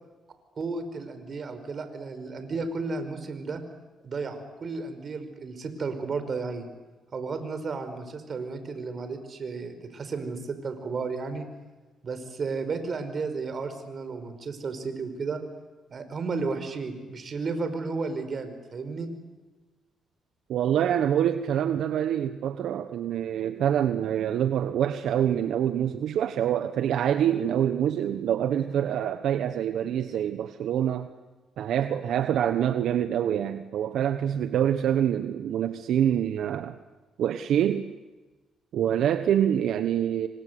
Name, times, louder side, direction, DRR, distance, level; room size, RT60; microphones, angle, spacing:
voice 1, 0.6-3.6 4.0-6.7 7.1-11.5 12.0-15.4 15.9-19.1, right 4 dB, 45° right, 9 dB, 5.1 m, -33 dB
voice 2, 20.5-31.1 31.6-36.7 37.2-37.9 38.7-40.3, right 10 dB, 75° right, 9 dB, 1.2 m, -26 dB
28.5 x 25.0 x 8.3 m, 1.2 s
cardioid pair, 90°, 0 cm